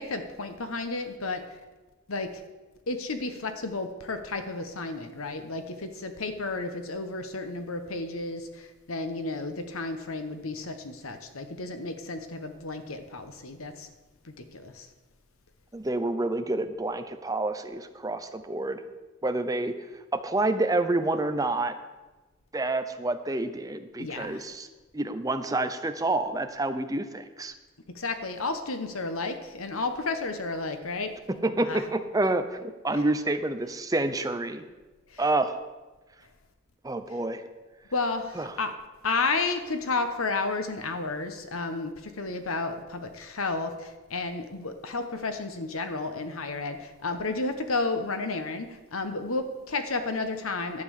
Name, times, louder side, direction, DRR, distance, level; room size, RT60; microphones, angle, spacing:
voice 1, 0.0-1.4 2.1-2.4 2.9-13.9 14.2-14.9 24.0-24.4 27.9-31.1 31.7-31.8 32.9-33.0 35.1-35.2 37.9-38.7 39.0-50.8, left 3 dB, 85° left, 8 dB, 1.2 m, -32 dB
voice 2, 15.7-18.8 19.2-19.7 20.1-21.7 22.5-24.7 24.9-27.5 31.4-34.6 35.2-35.6 36.8-37.4 38.4-38.5, right 2 dB, 15° right, 9 dB, 0.7 m, -28 dB
11.0 x 7.6 x 6.6 m, 1.2 s
head